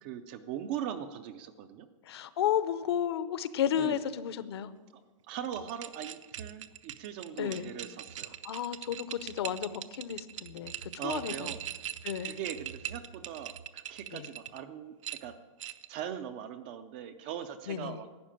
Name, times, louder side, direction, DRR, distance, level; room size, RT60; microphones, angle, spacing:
voice 1, 0.0-1.9 3.7-4.0 5.3-8.3 11.0-11.6 12.2-14.9 15.2-15.3 15.9-18.1, right 9 dB, 20° right, 9 dB, 0.4 m, -40 dB
voice 2, 2.0-4.7 7.4-7.7 8.4-11.5 12.0-12.4 14.1-14.3 17.7-18.0, left 9 dB, 50° left, 14 dB, 0.8 m, -33 dB
sound 1, 5.4-14.6 15.0-16.0, right 10 dB, 70° right, 0.8 m, -42 dB
12.5 x 9.2 x 8.7 m, 1.3 s
supercardioid pair, 180°, 17 cm